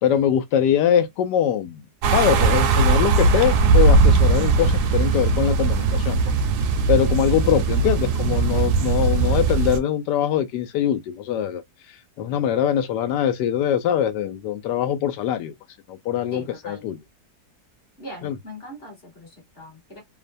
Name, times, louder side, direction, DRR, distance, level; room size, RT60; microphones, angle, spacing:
voice 1, 0.0-1.8 2.1-6.2 6.9-11.6 12.2-15.5 15.9-17.0 18.2-18.4, left 10 dB, 90° left, 1.2 m, -22 dB
sound 1, 2.0-9.8, right 4 dB, 75° right, 1.1 m, -19 dB
voice 2, 16.3-16.8 18.0-20.0, left 1 dB, 40° left, 1.2 m, -40 dB
3.1 x 2.1 x 2.5 m
omnidirectional pair, 1.8 m